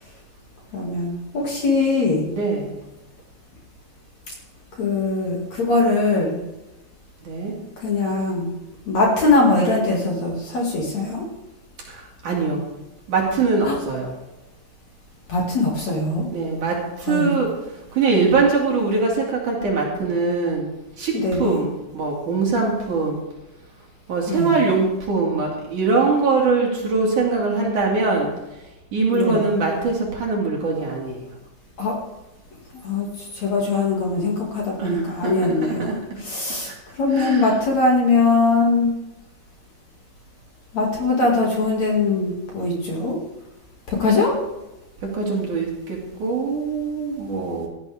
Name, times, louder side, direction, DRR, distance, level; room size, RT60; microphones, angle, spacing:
voice 1, 0.7-2.2 4.8-6.4 7.8-8.5 8.9-11.2 13.6-13.8 15.3-16.3 17.1-17.3 21.1-21.6 24.3-24.6 29.1-29.4 31.8-32.0 32.8-38.9 40.7-43.2 43.9-44.4, left 3 dB, 45° left, -2 dB, 3.1 m, -21 dB
voice 2, 2.2-2.7 7.2-7.5 11.9-12.7 13.1-14.1 16.3-17.5 17.9-20.7 21.0-23.2 24.1-28.3 28.9-31.3 34.8-36.2 37.1-37.6 45.1-47.7, right 4 dB, 50° right, -2 dB, 3.5 m, -22 dB
17.0 x 12.5 x 3.5 m, 0.98 s
omnidirectional pair, 4.9 m